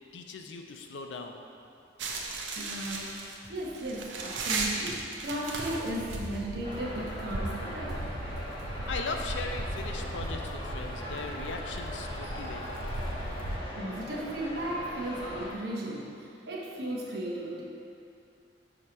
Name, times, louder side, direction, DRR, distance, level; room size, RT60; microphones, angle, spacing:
voice 1, 0.1-1.4 8.9-12.9, left 4 dB, 80° left, 4 dB, 0.5 m, -39 dB
sound 1, 2.0-13.6, right 2 dB, 90° right, 0.6 m, -37 dB
voice 2, 2.6-3.2 3.5-8.0 13.8-17.6, right 1 dB, 60° right, -3 dB, 0.9 m, -35 dB
sound 2, 3.4-3.8 4.1-5.7 6.0-7.6 7.9-11.0, right 1 dB, 25° right, 0.5 m, -53 dB
sound 3, 6.6-15.5, equal, 30° left, 1.1 m, -40 dB
6.3 x 2.9 x 5.1 m, 2.6 s
head